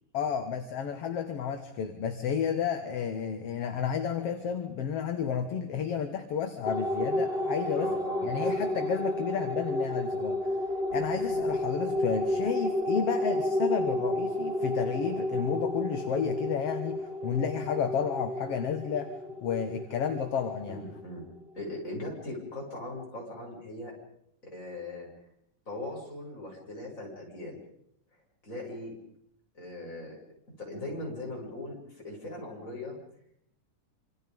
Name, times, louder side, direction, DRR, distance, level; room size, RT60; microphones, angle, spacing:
voice 1, 0.1-7.9 8.2-10.4 10.9-19.1 19.4-20.8, left 7 dB, 50° left, 6 dB, 2.2 m, -31 dB
sound 1, 6.7-21.4, left 1 dB, 60° right, 0.5 m, -31 dB
voice 2, 7.7-8.9 10.9-11.4 20.7-21.2 21.6-23.9 24.4-25.1 25.7-27.6 28.4-28.9 29.5-30.2 30.6-33.0, left 1 dB, 20° left, -2 dB, 7.9 m, -40 dB
27.5 x 26.5 x 5.4 m, 0.76 s
omnidirectional pair, 4.0 m